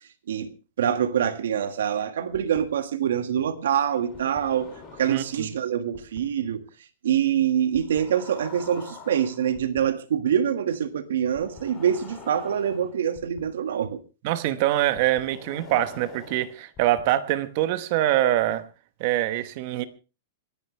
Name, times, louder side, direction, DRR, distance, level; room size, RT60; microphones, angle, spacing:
voice 1, 0.3-6.6 7.0-14.0, right 9 dB, 90° right, 1.7 m, -25 dB
sound 1, 2.3-2.6 3.9-5.5 5.9-6.2 7.7-9.8 11.3-13.4 14.9-17.0, left 4 dB, 15° left, 2.7 m, -45 dB
voice 2, 5.1-5.5 14.2-18.7 19.0-19.8, right 13 dB, 35° right, 1.0 m, -24 dB
27.0 x 10.5 x 3.3 m
supercardioid pair, 180°, 0 cm